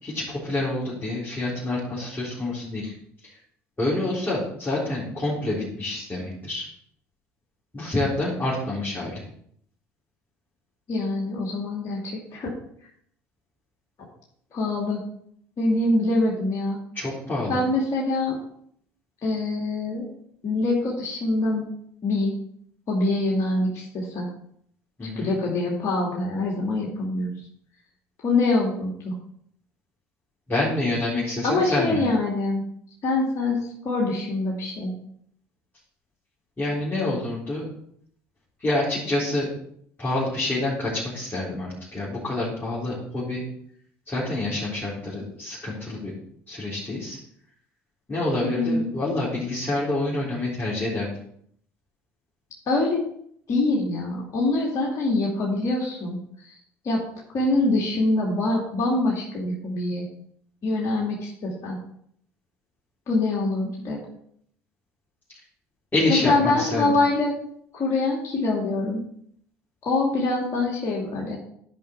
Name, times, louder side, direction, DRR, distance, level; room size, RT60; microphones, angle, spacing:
voice 1, 0.0-2.9 3.2-3.3 3.8-6.7 7.7-9.2 16.9-17.6 25.0-25.3 30.5-32.0 36.6-37.7 38.6-39.6 40.0-43.4 44.1-46.1 46.5-47.2 48.1-51.1 65.9-67.0, left 2 dB, 25° left, -7 dB, 4.1 m, -27 dB
voice 2, 10.9-12.6 14.5-15.0 15.6-16.8 17.5-18.4 19.2-20.0 20.4-21.6 22.0-22.3 22.9-24.3 25.2-27.3 28.2-29.1 31.4-32.6 33.0-34.9 48.4-49.0 52.7-53.0 53.5-56.2 56.5-56.6 56.8-57.0 57.3-60.1 60.6-61.8 63.1-64.0 66.1-67.3 67.7-69.0 69.8-71.4, left 2 dB, 50° left, -3 dB, 2.5 m, -24 dB
10.5 x 5.4 x 4.6 m, 0.67 s
hypercardioid pair, 70°, 7 cm